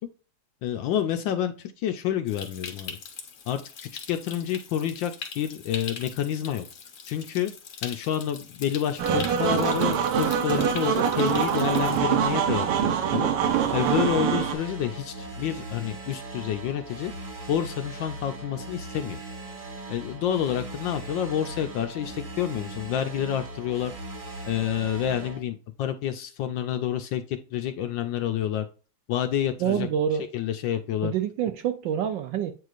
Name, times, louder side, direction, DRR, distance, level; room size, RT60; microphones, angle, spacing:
voice 1, 0.6-3.0 3.5-6.7 7.1-7.5 7.8-17.1 17.5-19.2 19.9-23.9 24.4-28.7 29.1-29.9 30.3-31.1, left 10 dB, 75° left, 1.1 m, -29 dB
Stream, 2.3-12.0, left 6 dB, 50° left, 1.2 m, -42 dB
sound 1, 9.0-14.5, right 8 dB, 90° right, 1.7 m, -24 dB
sound 2, 11.6-25.4, right 2 dB, 30° right, 1.0 m, -39 dB
voice 2, 29.6-30.3 31.0-32.5, right 9 dB, 75° right, 1.1 m, -27 dB
8.2 x 4.7 x 2.5 m
omnidirectional pair, 2.4 m